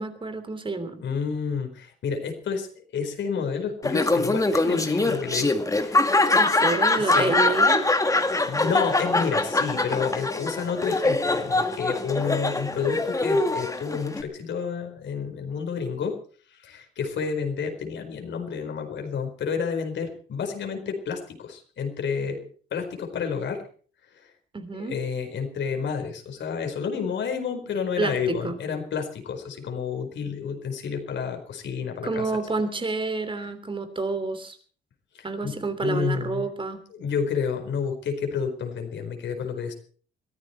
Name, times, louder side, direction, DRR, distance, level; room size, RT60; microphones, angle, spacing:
voice 1, 0.0-1.0 6.4-7.9 24.5-25.0 28.0-28.5 32.0-34.6 35.2-36.8, right 3 dB, 25° right, 11 dB, 3.2 m, -29 dB
voice 2, 1.0-6.1 7.0-7.5 8.5-16.2 16.5-23.7 24.1-24.3 24.7-32.3 35.1-36.5 36.9-39.7, left 6 dB, 65° left, 4 dB, 4.6 m, -30 dB
Laughter, 3.8-14.2, left 2 dB, 15° left, 2.1 m, -23 dB
22.5 x 14.0 x 4.4 m, 0.43 s
cardioid pair, 90°, 20 cm